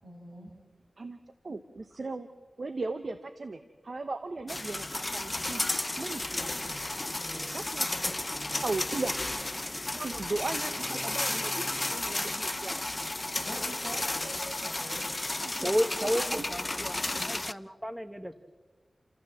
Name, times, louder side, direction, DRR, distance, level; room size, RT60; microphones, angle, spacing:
voice 1, 0.0-0.5 6.4-8.6 8.9-9.1 10.1-10.2 10.7-10.8 13.4-15.2 16.0-16.1 16.8-17.3, right 1 dB, 85° right, -1 dB, 7.8 m, -46 dB
voice 2, 1.4-2.3 2.6-5.6 6.0-6.5 7.5-8.1 8.5-9.2 9.9-12.8 15.4-15.7 16.0-16.4, right 3 dB, 60° right, 9 dB, 1.1 m, -37 dB
sound 1, 4.5-17.5, left 2 dB, 30° left, 0.6 m, -33 dB
voice 3, 15.6-18.3, equal, 5° right, 11 dB, 1.1 m, -32 dB
29.5 x 14.5 x 7.7 m, 1.4 s
cardioid pair, 55°, 0 cm